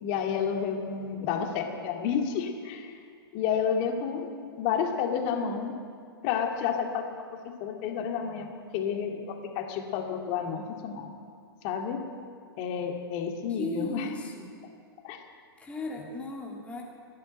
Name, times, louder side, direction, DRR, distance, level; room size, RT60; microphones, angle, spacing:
voice 1, 0.0-3.0 3.3-5.7 6.2-11.1 11.6-12.1 12.6-14.1 15.0-15.2, left 7 dB, 40° left, 3 dB, 2.2 m, -30 dB
voice 2, 13.6-14.5 15.6-16.8, left 3 dB, 10° left, -2 dB, 2.0 m, -36 dB
16.0 x 10.5 x 7.8 m, 2.3 s
hypercardioid pair, 115°, 13 cm